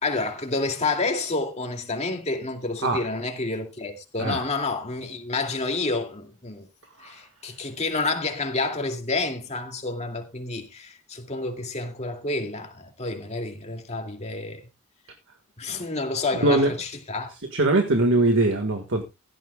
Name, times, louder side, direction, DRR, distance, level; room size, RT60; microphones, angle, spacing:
voice 1, 0.0-6.7 7.0-14.6 15.6-17.3, left 3 dB, 30° left, 2.4 m, -29 dB
voice 2, 16.4-16.7 17.5-19.0, right 2 dB, 60° right, 1.7 m, -21 dB
16.0 x 12.5 x 2.3 m
head